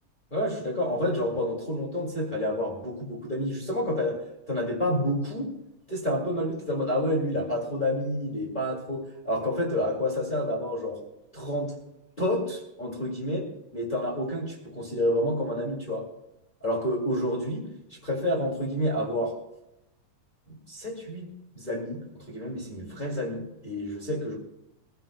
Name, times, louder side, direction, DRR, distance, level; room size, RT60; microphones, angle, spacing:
voice 1, 0.3-4.2 4.5-5.5 5.9-11.0 11.3-11.8 12.2-16.1 16.6-19.4 20.5-21.3 21.5-24.4, left 1 dB, 15° left, -3 dB, 2.2 m, -29 dB
23.0 x 15.0 x 2.2 m, 0.88 s
omnidirectional pair, 3.5 m